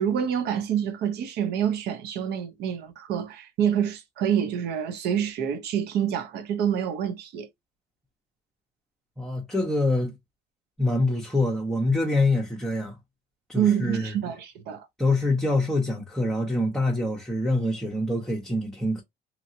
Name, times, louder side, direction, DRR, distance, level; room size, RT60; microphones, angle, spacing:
voice 1, 0.0-7.5 13.5-14.9, right 9 dB, 75° right, 0.8 m, -27 dB
voice 2, 9.2-10.1 10.8-12.9 13.5-14.1 15.0-19.0, left 2 dB, ahead, 0.9 m, -25 dB
2.9 x 2.7 x 2.7 m
cardioid pair, 110°, 17 cm